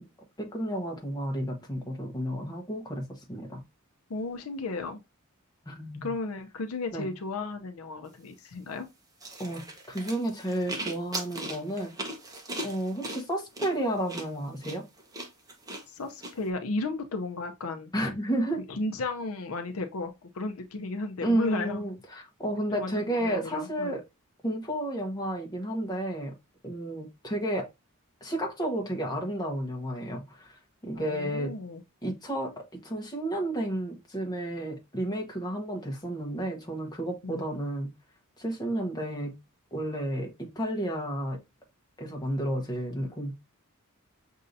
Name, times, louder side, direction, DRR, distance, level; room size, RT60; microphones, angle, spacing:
voice 1, 0.4-3.0 3.3-3.6 5.7-6.1 6.9-7.1 9.4-11.9 12.6-14.8 17.9-18.6 21.2-24.0 24.4-26.3 26.6-27.7 28.2-31.5 32.0-37.9 38.4-39.4 39.7-41.4 42.0-43.3, right 1 dB, 20° left, 1.1 m, -32 dB
voice 2, 4.1-5.0 6.0-8.9 15.9-17.9 18.7-21.8 22.7-24.0 30.9-31.8 37.2-37.4, left 2 dB, 70° left, 0.6 m, -34 dB
sound 1, 9.2-16.3, right 1 dB, 15° right, 0.9 m, -38 dB
6.3 x 2.7 x 2.6 m
head